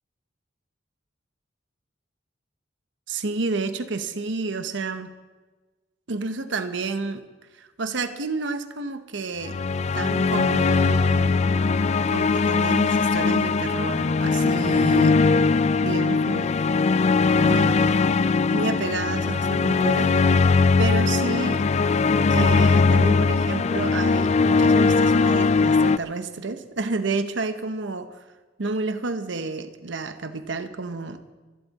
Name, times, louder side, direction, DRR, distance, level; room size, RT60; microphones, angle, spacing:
voice 1, 3.1-5.1 6.1-7.2 7.5-9.6 9.9-11.4 12.1-15.2 15.8-16.5 17.4-17.8 18.5-20.1 20.8-21.7 22.3-28.2 28.6-31.2, right 3 dB, 75° right, 10 dB, 0.9 m, -30 dB
sound 1, 9.4-26.0, left 4 dB, 35° left, 0.4 m, -20 dB
24.0 x 12.0 x 4.1 m, 1.3 s
head